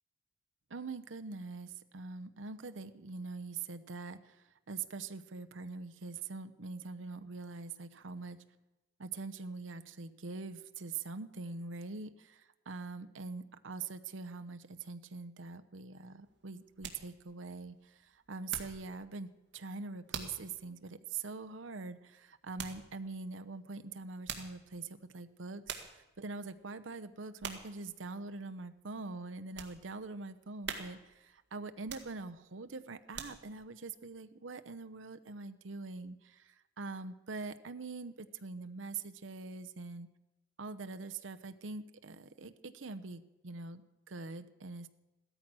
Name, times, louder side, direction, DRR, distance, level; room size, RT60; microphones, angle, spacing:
voice 1, 0.7-8.4 9.0-40.1 40.6-44.9, right 4 dB, 80° right, 9 dB, 0.8 m, -44 dB
sound 1, 16.2-18.9 19.3-19.6 20.1-20.5 20.9-21.0 22.6-22.9 24.0-24.7 25.3-25.4 25.6-26.1 26.5-26.9 27.4-27.8 28.2-28.4 28.9-29.8 30.2-30.3 30.6-31.2 31.8-32.5 32.9-33.6 34.1-34.2, right 7 dB, 65° right, 1.9 m, -44 dB
16.0 x 13.0 x 6.2 m, 1.0 s
head